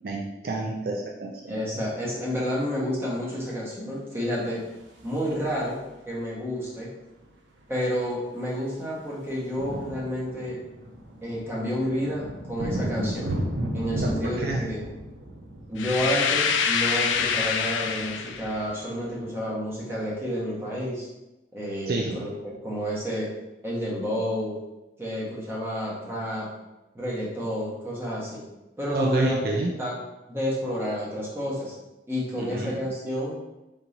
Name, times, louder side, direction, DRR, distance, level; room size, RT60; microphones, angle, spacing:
voice 1, 0.0-1.6 14.0-14.7 21.9-22.2 28.9-29.7 32.4-32.7, right 2 dB, 50° right, -1 dB, 0.4 m, -29 dB
voice 2, 1.5-4.6 5.0-5.8 6.0-6.9 7.7-10.6 11.2-13.3 13.7-14.8 15.7-21.1 21.5-23.3 23.6-24.6 25.0-26.5 26.9-28.4 28.8-29.4 29.8-30.0 30.3-31.7 32.1-33.4, equal, 15° right, -6 dB, 1.0 m, -30 dB
sound 1, 4.4-5.9 7.2-7.3 7.5-7.7 8.0-20.1, right 1 dB, 80° right, 0.7 m, -36 dB
sound 2, 15.8-18.6, left 6 dB, 90° left, 0.4 m, -25 dB
3.6 x 3.0 x 3.9 m, 0.99 s
head